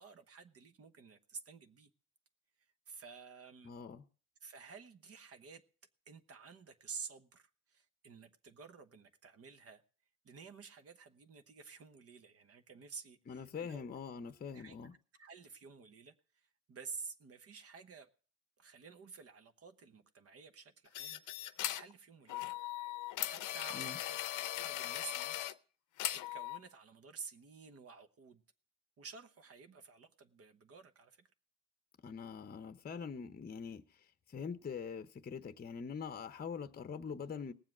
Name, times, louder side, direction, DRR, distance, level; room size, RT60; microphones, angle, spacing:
voice 1, 0.0-1.9 2.9-3.7 4.4-5.6 6.1-9.8 10.2-13.9 14.5-14.8 15.2-16.1 16.7-18.1 18.6-22.5 23.3-25.4 26.1-28.4 29.0-31.3, right 5 dB, 50° right, 1.1 m, -52 dB
voice 2, 3.6-4.0 13.3-15.0 23.7-24.0 32.0-37.5, left 6 dB, 30° left, 0.7 m, -44 dB
sound 1, 20.9-21.9 22.3-25.5 26.0-26.6, left 14 dB, 80° left, 0.7 m, -39 dB
18.5 x 7.4 x 6.0 m
cardioid pair, 90°, 30 cm